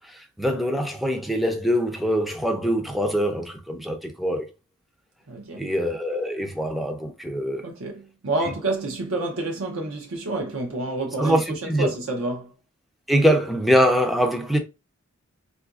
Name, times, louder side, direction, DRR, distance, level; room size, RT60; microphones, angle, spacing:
voice 1, 0.0-4.5 5.6-7.6 8.4-8.5 11.2-11.9 13.1-14.6, equal, ahead, 0.4 m, -23 dB
voice 2, 5.3-5.7 7.6-12.5, right 2 dB, 65° right, 0.6 m, -29 dB
3.7 x 2.5 x 2.3 m
head